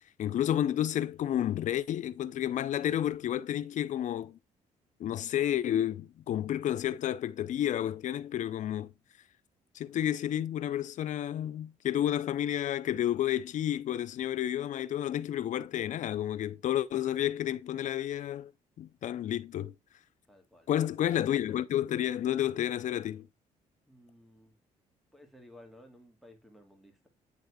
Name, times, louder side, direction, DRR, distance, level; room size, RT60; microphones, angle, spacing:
voice 1, 0.2-4.4 5.0-8.9 9.7-18.5 18.8-19.7 20.7-23.3, left 11 dB, 65° left, 0.7 m, -31 dB
voice 2, 20.3-20.7 23.9-24.6 25.1-27.1, left 1 dB, ahead, 2.3 m, -56 dB
9.5 x 3.4 x 4.8 m
cardioid pair, 85°, 14 cm